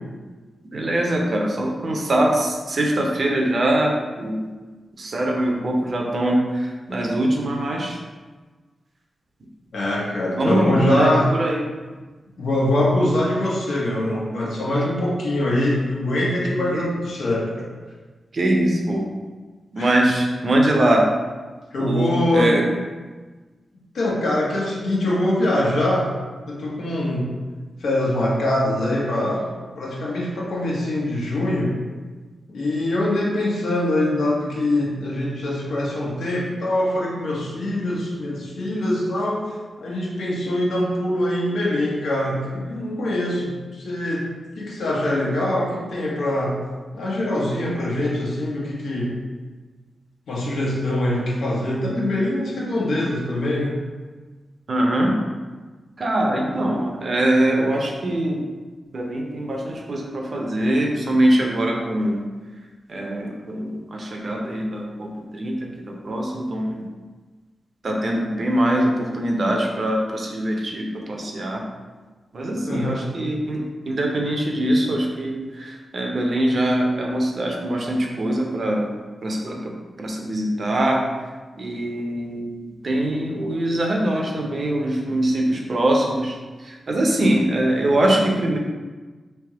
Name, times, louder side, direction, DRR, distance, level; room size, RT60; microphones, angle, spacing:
voice 1, 0.7-4.5 5.0-8.0 10.3-11.6 16.7-16.9 18.3-19.0 19.7-21.1 21.8-22.6 54.7-55.1 56.0-58.4 58.9-62.2 62.9-66.8 67.8-71.6 72.3-78.9 79.2-81.0 81.6-82.5 82.8-88.6, right 1 dB, 40° right, 0 dB, 0.6 m, -22 dB
voice 2, 9.7-11.3 12.4-17.7 19.8-19.9 21.7-22.6 23.9-26.1 26.5-27.3 27.8-31.7 32.5-44.3 44.6-46.6 46.9-49.2 50.3-53.8 72.7-73.0, left 1 dB, 90° left, -5 dB, 1.2 m, -23 dB
3.4 x 3.1 x 4.8 m, 1.3 s
wide cardioid pair, 175°, 0 cm